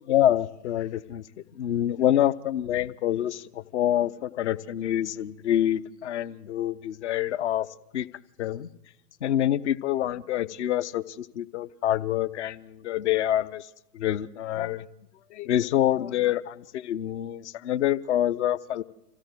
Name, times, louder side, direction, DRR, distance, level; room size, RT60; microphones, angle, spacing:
voice 1, 0.1-1.2 1.6-7.7 7.9-8.1 8.4-8.7 9.2-13.6 13.9-14.9 15.3-18.8, left 12 dB, 45° left, 17 dB, 0.8 m, -26 dB
25.5 x 16.0 x 7.7 m, 0.94 s
figure-of-eight pair, 110°, 49 cm